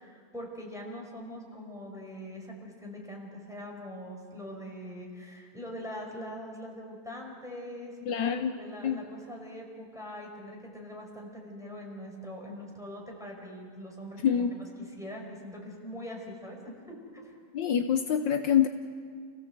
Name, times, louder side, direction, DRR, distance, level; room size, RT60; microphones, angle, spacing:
voice 1, 0.0-17.3, equal, ahead, -2 dB, 4.9 m, -43 dB
voice 2, 8.1-8.5 8.8-9.0 14.2-14.5 17.5-18.7, left 8 dB, 70° left, 7 dB, 1.5 m, -25 dB
29.5 x 16.5 x 8.0 m, 2.1 s
omnidirectional pair, 2.1 m